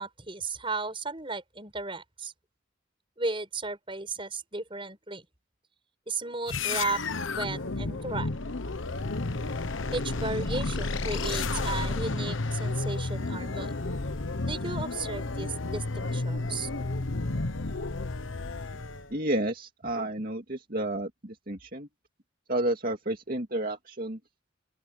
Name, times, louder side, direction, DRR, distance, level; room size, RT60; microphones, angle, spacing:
voice 1, 0.0-2.3 3.2-5.3 6.1-7.0 7.4-8.3 9.9-13.7 14.5-16.7, right 3 dB, 25° right, 6.2 m, -34 dB
sound 1, 6.5-19.1, left 3 dB, 90° left, 1.2 m, -32 dB
voice 2, 19.1-21.9 22.5-24.2, right 1 dB, 50° right, 2.3 m, -31 dB
open air
head